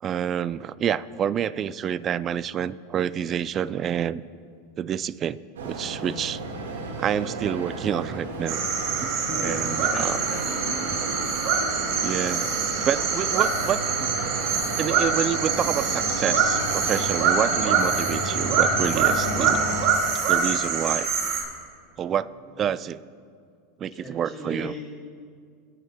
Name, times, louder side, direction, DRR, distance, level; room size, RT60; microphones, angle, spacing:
voice 1, 0.0-4.2 4.8-6.4 7.0-8.6 9.0-10.2 12.0-12.5 12.8-14.1 14.8-19.6 20.3-21.1 22.0-22.3 22.6-23.0 23.8-24.7, right 9 dB, 35° right, 17 dB, 0.3 m, -28 dB
sound 1, 5.6-19.9, right 2 dB, 85° right, 1.6 m, -32 dB
sound 2, 8.5-21.4, right 6 dB, 60° right, 2.0 m, -25 dB
voice 2, 9.3-10.9 23.9-24.9, left 1 dB, 20° left, -2 dB, 1.6 m, -38 dB
24.0 x 8.8 x 2.2 m, 2.1 s
hypercardioid pair, 100°, 0 cm